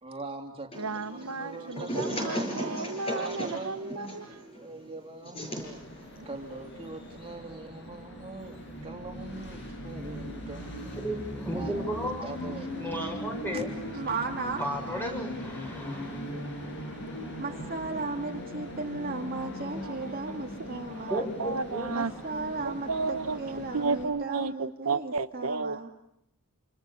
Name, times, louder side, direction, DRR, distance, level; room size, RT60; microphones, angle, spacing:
voice 1, 0.0-0.7 1.1-5.8 6.3-11.0 11.5-11.7 12.2-12.7 13.5-13.6, right 2 dB, 25° right, 2 dB, 3.4 m, -42 dB
sound 1, 0.7-7.4, equal, 25° left, 7.5 m, -37 dB
voice 2, 0.8-4.5 6.2-6.3 19.8-19.9 20.3-20.4 20.9-22.1 22.6-25.9, right 4 dB, 75° right, 10 dB, 1.0 m, -33 dB
Train, 5.6-24.0, equal, 55° left, 7.9 m, -40 dB
voice 3, 10.9-12.4 12.7-13.7 14.6-16.7 17.0-17.2 21.1-21.9, equal, 10° left, 2 dB, 6.4 m, -35 dB
voice 4, 13.9-14.6 17.4-21.3 21.9-25.9, right 3 dB, 40° right, 2 dB, 2.1 m, -35 dB
28.5 x 28.0 x 7.0 m, 0.79 s
head